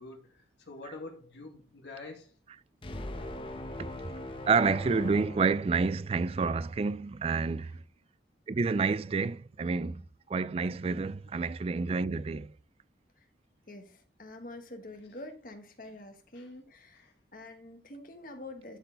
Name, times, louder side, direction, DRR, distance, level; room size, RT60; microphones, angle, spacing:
voice 1, 0.0-2.3 15.9-16.0 16.3-16.5 16.9-17.1, left 3 dB, 85° left, 2.3 m, -46 dB
sound 1, 2.8-6.3, left 1 dB, 30° left, 0.9 m, -41 dB
voice 2, 3.8-4.1 4.5-7.8 8.5-10.0 10.3-12.5, right 4 dB, 35° right, 0.3 m, -29 dB
voice 3, 13.7-18.8, left 2 dB, 50° left, 1.5 m, -46 dB
11.5 x 4.5 x 3.9 m
head